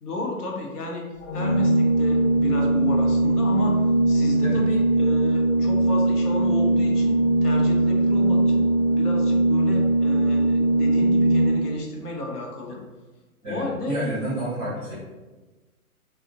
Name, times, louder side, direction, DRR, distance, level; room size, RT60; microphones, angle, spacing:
voice 1, 0.0-1.0 1.3-3.8 4.1-12.8 13.4-14.0, left 2 dB, 85° left, 0 dB, 0.8 m, -32 dB
Organ, 1.2-11.9, right 2 dB, 50° left, 0.9 m, -20 dB
voice 2, 4.4-4.7 13.4-14.9, equal, 10° right, -11 dB, 0.7 m, -30 dB
2.6 x 2.0 x 2.4 m, 1.2 s
hypercardioid pair, 135°, 45 cm